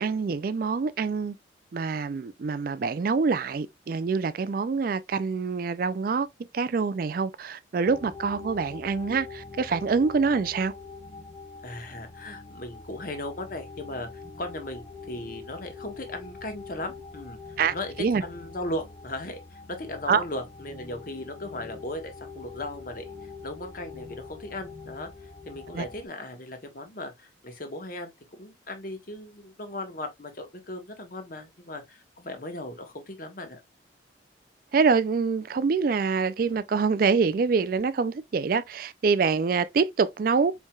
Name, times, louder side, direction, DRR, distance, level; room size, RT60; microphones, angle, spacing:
voice 1, 0.0-1.4 1.7-6.3 6.5-10.7 17.6-18.2 20.1-20.2 25.7-25.9 34.7-40.5, right 5 dB, 50° right, 0.3 m, -25 dB
sound 1, 7.9-26.1, left 4 dB, 25° left, 0.5 m, -44 dB
voice 2, 11.6-14.1 14.4-25.1 25.5-28.1 28.4-33.6, left 1 dB, 45° left, 1.2 m, -37 dB
4.5 x 4.5 x 2.3 m
head